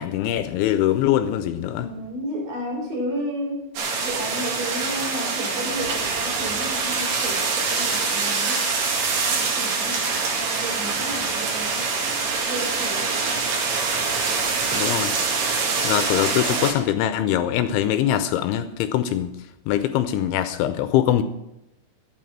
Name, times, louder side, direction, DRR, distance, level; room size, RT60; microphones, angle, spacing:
voice 1, 0.0-1.9 14.7-15.1 15.8-19.3 19.7-21.2, left 11 dB, 85° left, 10 dB, 2.9 m, -22 dB
voice 2, 1.8-3.7 4.0-8.7 9.3-10.1 10.4-12.0 12.4-13.5, equal, 45° right, -1 dB, 5.3 m, -32 dB
sound 1, 3.8-16.7, right 4 dB, 60° right, 4.0 m, -24 dB
12.5 x 8.6 x 7.4 m, 0.87 s
omnidirectional pair, 5.6 m